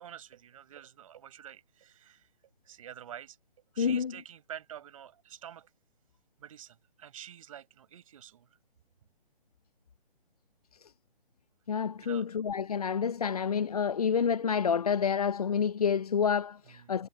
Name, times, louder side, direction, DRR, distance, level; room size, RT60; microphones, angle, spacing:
voice 1, 0.0-2.3 2.6-3.4 3.7-5.7 6.4-8.5 12.0-12.3 16.6-16.9, right 10 dB, 35° right, 5.4 m, -48 dB
voice 2, 3.8-4.1 10.8-10.9 11.7-17.1, left 7 dB, 40° left, 0.7 m, -28 dB
figure-of-eight pair, 140°, 29 cm